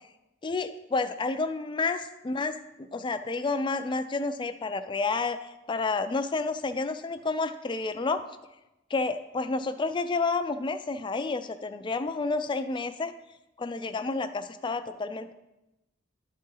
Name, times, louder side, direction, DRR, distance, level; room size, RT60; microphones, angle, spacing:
voice 1, 0.4-5.4 5.7-8.2 8.9-13.1 13.6-15.3, left 3 dB, 25° left, 10 dB, 0.4 m, -30 dB
11.5 x 4.1 x 3.8 m, 0.95 s
head